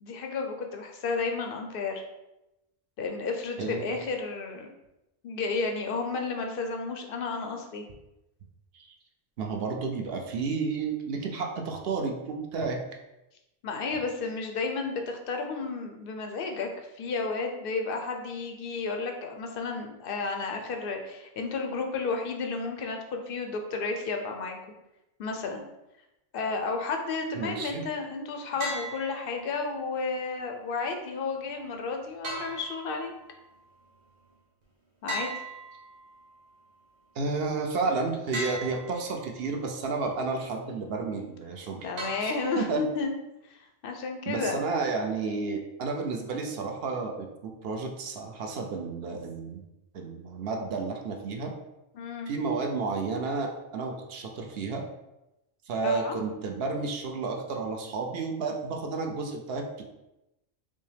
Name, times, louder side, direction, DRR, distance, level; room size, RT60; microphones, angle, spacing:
voice 1, 0.0-2.0 3.0-4.7 5.2-7.8 13.6-24.6 25.2-25.6 26.3-33.1 35.0-35.3 41.8-43.1 43.5-44.6 51.9-52.3 55.8-56.1, left 4 dB, 65° left, 3 dB, 0.6 m, -32 dB
voice 2, 3.6-3.9 8.7-8.9 9.4-12.8 27.3-27.8 37.2-41.9 42.2-42.9 44.3-49.6 49.9-51.5 52.3-54.8 55.7-59.8, right 4 dB, 60° right, 2 dB, 0.7 m, -31 dB
sound 1, 28.6-29.6 32.2-33.3 35.1-36.3 38.3-39.3 42.0-42.9, right 1 dB, 85° right, 1.4 m, -38 dB
5.3 x 2.1 x 3.3 m, 0.92 s
omnidirectional pair, 1.4 m